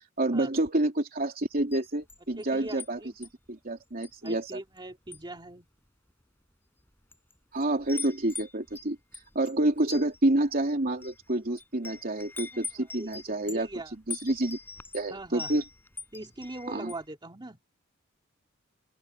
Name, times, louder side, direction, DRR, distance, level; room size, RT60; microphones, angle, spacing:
voice 1, 0.0-4.5 7.5-9.0 9.3-13.7 14.1-14.6 14.9-15.6 16.7-16.9, right 1 dB, 45° right, 3.2 m, -28 dB
Wind chime, 1.6-2.9 3.2-3.5 4.0-4.8 5.1-5.4 6.1-6.2 6.9-7.3 7.6-17.1, left 3 dB, 10° left, 5.6 m, -42 dB
voice 2, 2.4-3.2 4.2-5.7 13.0-13.9 15.1-15.6 16.1-17.6, right 2 dB, 20° right, 2.7 m, -41 dB
open air
head